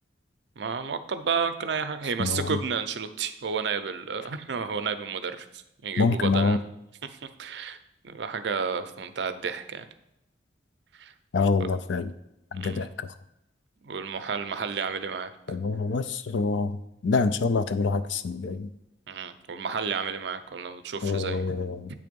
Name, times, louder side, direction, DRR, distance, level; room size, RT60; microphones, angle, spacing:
voice 1, 0.6-6.6 7.0-7.8 8.0-9.9 11.0-11.1 12.5-12.9 13.8-15.6 19.1-21.4, right 5 dB, 70° right, 10 dB, 0.5 m, -31 dB
voice 2, 2.2-2.6 6.0-6.6 11.3-12.1 12.5-12.9 15.5-16.8 17.0-18.7 21.0-21.9, left 4 dB, 90° left, 12 dB, 0.4 m, -26 dB
8.5 x 3.4 x 5.2 m, 0.85 s
head